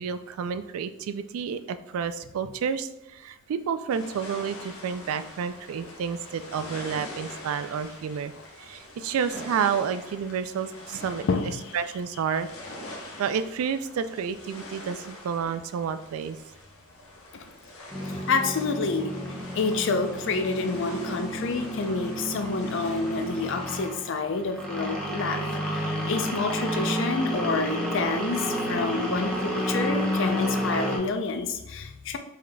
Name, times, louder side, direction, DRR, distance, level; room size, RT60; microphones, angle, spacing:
voice 1, 0.0-8.3 8.6-11.2 11.7-12.5 13.2-16.4 21.0-21.3 23.3-23.6 27.8-28.1, right 7 dB, 80° right, 13 dB, 0.3 m, -30 dB
sound 1, 3.9-23.8, left 1 dB, 85° left, 0.9 m, -44 dB
voice 2, 10.9-11.6 18.3-19.2 19.5-32.2, left 4 dB, 60° left, 7 dB, 0.4 m, -28 dB
sound 2, 17.9-31.0, equal, 5° left, 0.8 m, -31 dB
5.0 x 3.7 x 2.2 m, 0.91 s
head